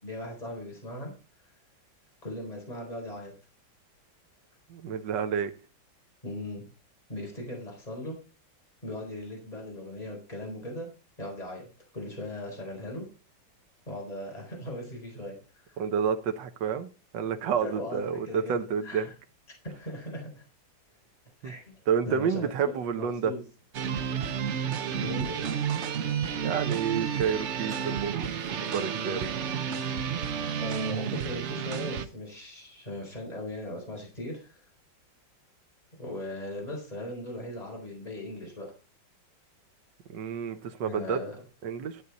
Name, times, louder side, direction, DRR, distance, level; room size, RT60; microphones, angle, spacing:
voice 1, 0.0-1.1 2.2-3.3 6.2-6.6 7.1-8.2 8.8-10.9 11.2-11.7 11.9-13.1 13.9-15.8 17.6-19.1 19.6-20.4 21.4-21.7 22.1-23.4 24.9-25.5 28.4-28.7 30.6-34.6 36.0-38.7 40.8-41.4, left 1 dB, 20° left, 4.3 m, -38 dB
voice 2, 4.7-5.5 15.8-19.1 21.4-21.5 21.9-23.3 26.3-29.4 40.1-41.2 41.6-42.0, right 7 dB, 80° right, 1.6 m, -30 dB
sound 1, 23.7-32.1, right 7 dB, 55° right, 0.8 m, -31 dB
12.5 x 8.2 x 4.1 m
omnidirectional pair, 2.0 m